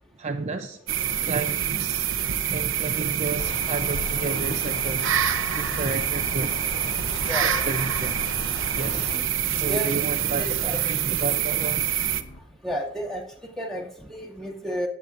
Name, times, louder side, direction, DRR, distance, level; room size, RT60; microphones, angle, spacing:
voice 1, 0.2-0.8 1.2-2.1 2.4-5.2 5.5-6.5 7.2-8.2 8.7-9.2 9.5-11.8, right 3 dB, 35° right, 4 dB, 0.6 m, -31 dB
sound 1, 0.9-12.2, right 10 dB, 70° right, 0.8 m, -26 dB
sound 2, 3.4-9.2, left 4 dB, 25° left, 0.3 m, -37 dB
sound 3, 4.3-12.5, left 1 dB, 90° left, 1.2 m, -46 dB
voice 2, 7.3-7.6 9.1-9.2 9.5-10.0 10.4-10.8 12.6-14.9, equal, ahead, -5 dB, 2.3 m, -32 dB
20.0 x 8.3 x 2.6 m, 0.75 s
head